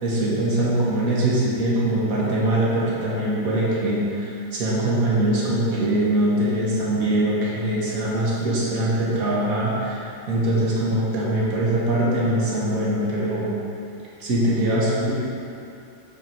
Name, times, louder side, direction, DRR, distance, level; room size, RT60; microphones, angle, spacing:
voice 1, 0.0-13.5 14.2-15.1, right 1 dB, 70° right, -7 dB, 2.0 m, -22 dB
7.0 x 6.7 x 4.5 m, 2.7 s
omnidirectional pair, 1.6 m